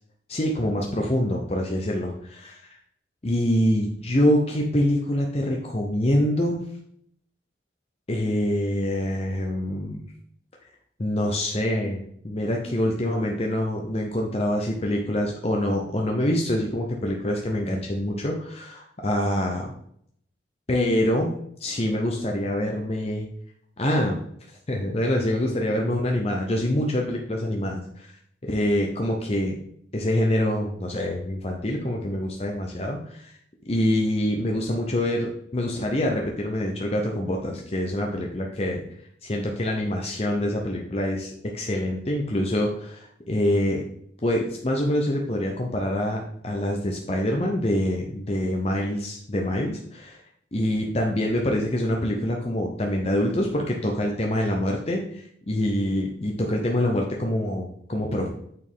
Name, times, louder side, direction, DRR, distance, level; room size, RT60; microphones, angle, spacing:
voice 1, 0.3-2.6 3.2-6.7 8.1-10.0 11.0-19.7 20.7-21.3 21.6-23.3 23.8-24.2 24.7-28.1 28.4-29.6 29.9-33.4 33.7-38.8 39.2-43.8 44.2-50.2 50.5-58.3, left 1 dB, 30° left, 0 dB, 0.7 m, -25 dB
8.8 x 4.4 x 3.6 m, 0.68 s
head